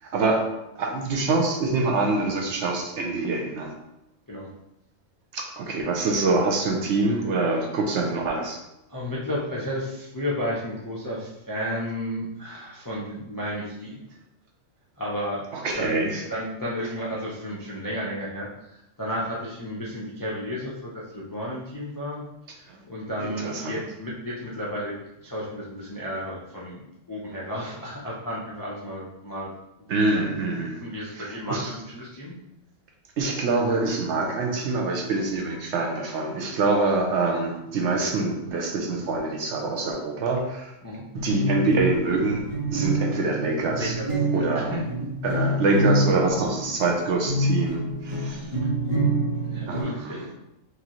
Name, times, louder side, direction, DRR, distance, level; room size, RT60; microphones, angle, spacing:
voice 1, 0.0-0.4 0.8-3.7 5.3-8.6 15.5-16.2 22.7-22.8 23.2-23.8 29.9-30.8 31.2-31.7 33.2-40.7 41.1-43.9 44.3-44.7 45.2-48.4 49.7-50.3, right 3 dB, 65° right, 1 dB, 0.9 m, -25 dB
voice 2, 8.9-14.0 15.0-15.4 15.8-16.0 16.3-22.2 22.5-24.9 25.2-26.8 27.1-29.5 29.9-30.3 30.8-32.4 40.8-41.0 43.8-44.1 44.4-44.8 48.2-48.3 49.4-50.3, equal, 30° left, -6 dB, 0.4 m, -33 dB
sound 1, 41.1-46.9 47.3-49.8, right 1 dB, 30° right, 1.5 m, -26 dB
4.7 x 2.7 x 3.0 m, 0.89 s
omnidirectional pair, 1.4 m